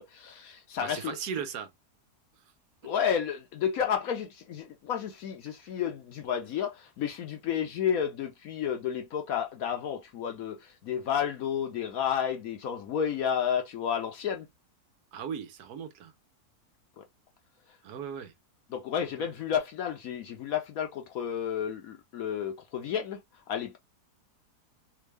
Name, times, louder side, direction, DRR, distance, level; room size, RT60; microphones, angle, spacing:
voice 1, 0.0-1.2 2.8-14.5 17.0-17.1 18.7-23.2 23.5-23.8, left 8 dB, 70° left, 1.0 m, -31 dB
voice 2, 0.8-1.7 15.1-16.1 17.8-18.3, right 7 dB, 75° right, 1.3 m, -37 dB
3.6 x 2.2 x 3.3 m
omnidirectional pair, 1.7 m